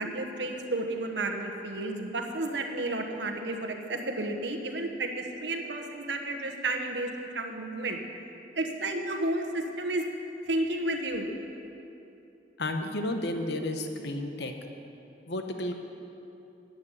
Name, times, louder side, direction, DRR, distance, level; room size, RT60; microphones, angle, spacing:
voice 1, 0.0-8.0 8.5-10.0 10.5-11.3, right 2 dB, 70° right, 4 dB, 1.2 m, -32 dB
voice 2, 12.6-14.5 15.3-15.7, left 1 dB, 65° left, 5 dB, 1.0 m, -32 dB
10.5 x 9.6 x 7.4 m, 2.8 s
head